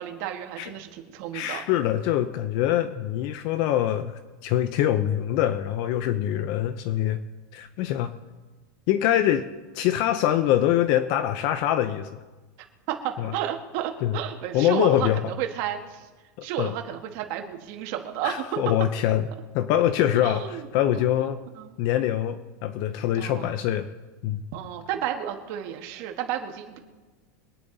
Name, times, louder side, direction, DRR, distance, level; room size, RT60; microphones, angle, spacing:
voice 1, 0.0-1.6 12.9-15.1 15.4-16.1 16.4-18.4 20.2-20.7 20.9-21.8 23.1-23.5 24.5-26.8, right 11 dB, 45° right, 4 dB, 1.7 m, -32 dB
voice 2, 1.3-7.2 7.5-8.1 8.9-9.5 9.7-12.2 13.2-13.3 14.0-14.2 14.5-15.2 16.4-16.7 18.2-19.3 19.5-21.4 21.8-23.9 24.2-24.4, left 12 dB, 45° left, 12 dB, 0.6 m, -24 dB
24.0 x 9.3 x 4.0 m, 1.3 s
supercardioid pair, 160°, 10 cm